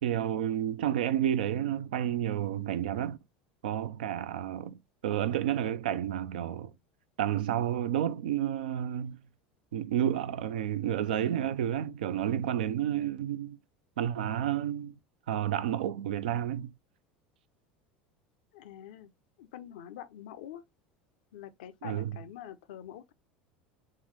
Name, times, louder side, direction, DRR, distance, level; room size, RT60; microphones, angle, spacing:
voice 1, 0.0-3.2 3.6-6.7 7.2-9.2 9.7-13.6 14.0-15.0 15.3-16.7 21.8-22.1, right 10 dB, 75° right, 0.4 m, -30 dB
voice 2, 18.5-19.1 19.4-20.6 21.3-23.1, left 11 dB, 75° left, 0.5 m, -45 dB
3.8 x 3.2 x 3.1 m
hypercardioid pair, 80°, 5 cm